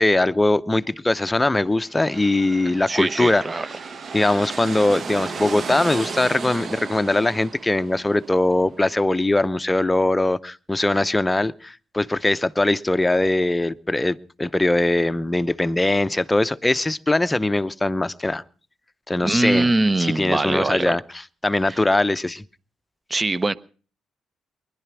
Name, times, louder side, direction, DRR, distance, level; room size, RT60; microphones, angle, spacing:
voice 1, 0.0-3.4 4.1-18.4 19.1-19.7 20.0-21.0 21.4-22.4, left 2 dB, 15° left, 12 dB, 0.8 m, -21 dB
sound 1, 1.7-9.4, right 5 dB, 50° right, 1.2 m, -35 dB
voice 2, 2.9-3.7 19.2-21.0 21.7-21.8 23.1-23.5, right 2 dB, 25° right, 16 dB, 0.8 m, -22 dB
20.5 x 11.5 x 6.1 m, 0.41 s
cardioid pair, 90°, 0 cm